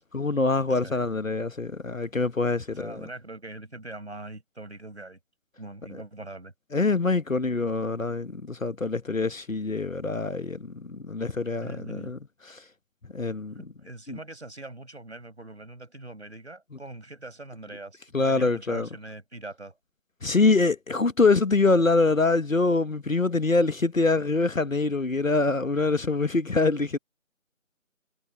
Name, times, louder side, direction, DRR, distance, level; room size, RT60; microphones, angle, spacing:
voice 1, 0.1-3.0 5.9-6.0 6.7-12.2 12.5-12.6 13.1-13.6 14.1-14.2 18.1-18.9 20.2-27.0, left 3 dB, 75° left, 1.3 m, -24 dB
voice 2, 0.7-1.0 2.7-5.2 5.6-6.5 11.6-12.1 13.6-19.8, right 2 dB, 55° right, 6.1 m, -42 dB
figure-of-eight pair, 165°, 40 cm